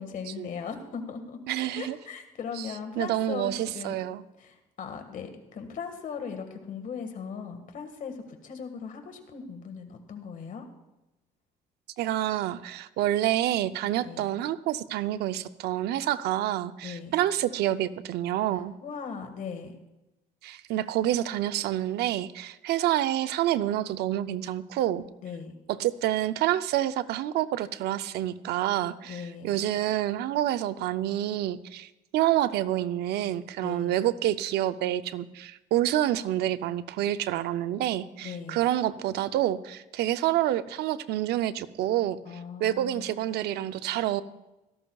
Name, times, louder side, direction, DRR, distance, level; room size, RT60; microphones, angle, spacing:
voice 1, 0.0-1.4 1.7-4.0 4.4-10.6 14.0-14.3 16.8-17.1 18.8-19.8 25.2-25.6 29.0-29.6 33.6-34.0 38.2-38.7 42.2-43.1, left 6 dB, 50° left, 6 dB, 1.7 m, -38 dB
voice 2, 1.5-2.0 3.0-4.2 12.0-18.8 20.4-25.0 25.7-42.2 42.6-44.2, right 13 dB, 75° right, 13 dB, 0.5 m, -28 dB
17.0 x 13.0 x 2.3 m, 0.99 s
cardioid pair, 110°, 17 cm